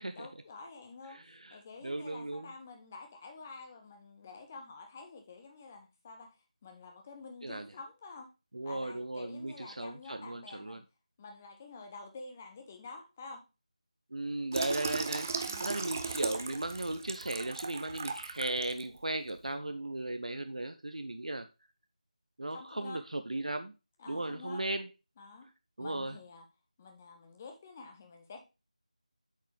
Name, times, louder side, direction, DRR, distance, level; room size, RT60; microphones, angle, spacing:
voice 1, 0.1-6.4 6.6-8.3 8.6-10.8 11.2-13.4 15.5-15.8 22.5-23.0 24.0-24.6 25.2-25.5 25.8-26.5 26.8-28.4, left 3 dB, 15° left, 0.8 m, -49 dB
voice 2, 1.1-1.6 1.8-2.5 7.4-7.6 8.5-10.8 14.1-15.3 15.6-21.5 22.4-23.7 24.1-24.9 25.8-26.1, right 2 dB, 65° right, 0.6 m, -36 dB
Water tap faucet / Sink (filling or washing), 14.5-18.8 19.3-19.5, right 4 dB, 20° right, 0.5 m, -37 dB
8.0 x 4.6 x 3.3 m
figure-of-eight pair, 165°, 4 cm